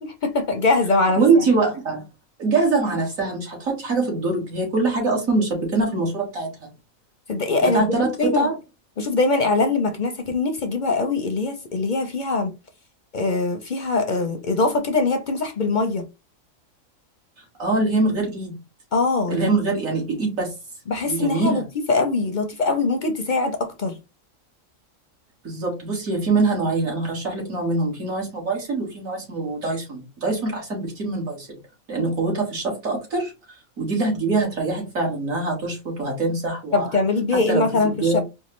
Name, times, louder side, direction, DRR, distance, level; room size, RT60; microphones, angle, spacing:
voice 1, 0.0-1.2 7.3-7.9 8.2-8.5 9.0-12.5 13.1-16.0 18.9-19.5 20.9-21.6 21.9-24.0 36.7-38.2, left 3 dB, 50° left, 0.5 m, -22 dB
voice 2, 1.2-2.0 2.4-6.7 7.6-8.6 17.4-18.5 19.3-20.5 21.0-21.6 25.4-31.6 31.9-33.3 33.8-36.9 37.3-38.2, right 3 dB, 75° right, 2.2 m, -23 dB
4.6 x 2.3 x 3.1 m
omnidirectional pair, 1.4 m